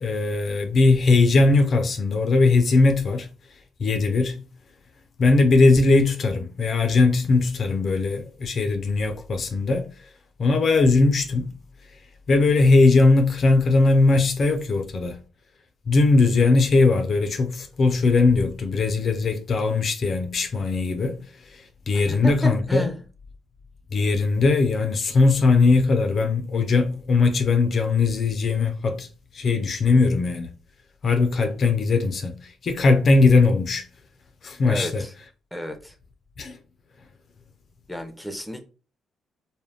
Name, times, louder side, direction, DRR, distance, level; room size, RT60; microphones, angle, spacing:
voice 1, 0.0-3.3 3.8-4.4 5.2-9.9 10.4-11.5 12.3-15.2 15.9-21.2 21.9-22.9 23.9-29.1 29.3-30.5 31.0-33.9 34.4-35.0 36.4-36.6, left 3 dB, 50° left, 0.4 m, -19 dB
voice 2, 21.9-23.0 34.7-35.1 35.5-36.0 37.9-38.7, equal, ahead, 0.5 m, -32 dB
2.3 x 2.1 x 3.3 m
cardioid pair, 90°, 0 cm